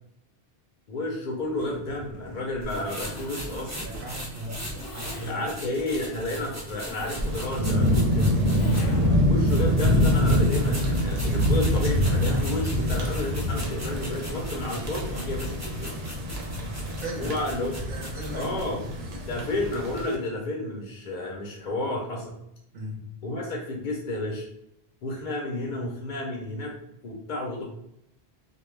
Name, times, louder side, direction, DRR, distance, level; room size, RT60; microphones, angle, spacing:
voice 1, 0.9-3.9 5.3-8.3 9.3-16.0 17.2-17.8 18.3-18.9 19.3-22.4 23.2-24.5 25.0-26.7 27.0-27.6, left 1 dB, 55° left, -1 dB, 0.6 m, -31 dB
Zipper (clothing), 1.4-9.4, left 2 dB, 85° left, 0.9 m, -42 dB
sound 1, 2.6-9.1 9.4-18.7, equal, 20° right, 0.5 m, -39 dB
voice 2, 3.8-5.5 16.9-19.2 22.7-23.1, right 1 dB, 50° right, -1 dB, 0.8 m, -38 dB
sound 2, 7.2-20.1, equal, 85° right, 0.9 m, -25 dB
2.2 x 2.1 x 3.1 m, 0.78 s
omnidirectional pair, 1.0 m